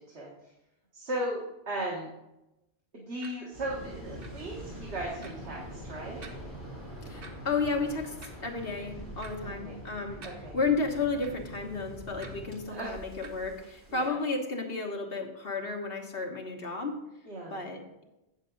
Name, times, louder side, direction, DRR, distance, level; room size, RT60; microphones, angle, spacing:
voice 1, 0.9-2.1 2.9-6.3 9.4-9.8 10.2-10.6 12.7-13.0 13.9-14.2 17.3-17.7, right 1 dB, 80° right, -3 dB, 1.7 m, -37 dB
sound 1, 3.2-3.3 4.2-4.3 5.2-5.3 6.2-6.4 7.2-7.3 8.2-8.4 9.2-9.3 10.2-10.3 11.2-11.3 12.2-12.3 13.2-13.3, right 3 dB, 60° right, 1.2 m, -47 dB
Waves surf, 3.5-14.1, equal, 20° right, 2.3 m, -46 dB
sound 2, 4.5-12.6, right 1 dB, 15° left, 3.0 m, -47 dB
voice 2, 7.0-8.1 8.4-10.2 10.5-16.9 17.5-18.0, left 4 dB, 60° left, 2 dB, 1.5 m, -32 dB
8.9 x 7.4 x 3.8 m, 0.93 s
omnidirectional pair, 1.1 m